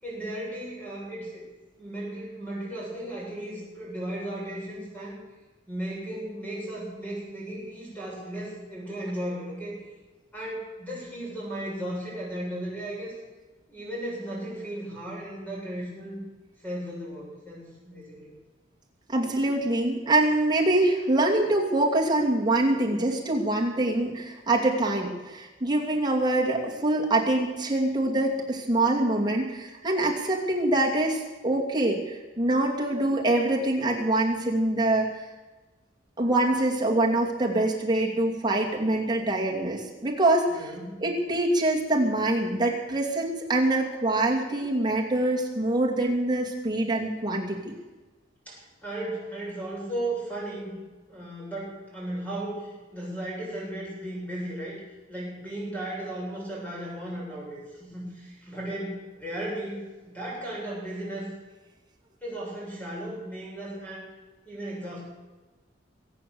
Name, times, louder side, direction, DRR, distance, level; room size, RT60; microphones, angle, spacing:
voice 1, 0.0-1.4 1.8-5.2 5.7-9.8 10.3-13.2 13.7-16.2 16.6-18.3 40.5-41.0 48.5-50.8 51.1-54.8 55.1-61.3 62.2-64.1 64.4-65.0, right 1 dB, 10° left, -5 dB, 7.5 m, -35 dB
voice 2, 19.1-35.1 36.2-40.7 41.0-47.7, right 2 dB, 25° right, -2 dB, 2.5 m, -25 dB
23.0 x 8.7 x 7.1 m, 1.2 s
head